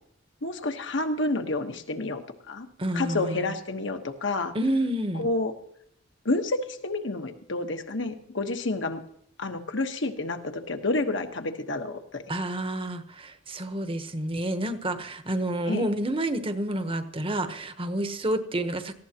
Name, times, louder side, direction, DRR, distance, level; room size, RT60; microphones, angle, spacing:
voice 1, 0.4-2.7 2.9-4.5 5.1-5.5 6.2-9.0 9.4-12.2 15.7-15.9, left 2 dB, 70° left, 6 dB, 1.3 m, -29 dB
voice 2, 2.8-3.5 4.5-5.3 12.3-18.9, right 1 dB, 30° right, 9 dB, 1.0 m, -29 dB
18.0 x 14.5 x 2.9 m, 0.68 s
head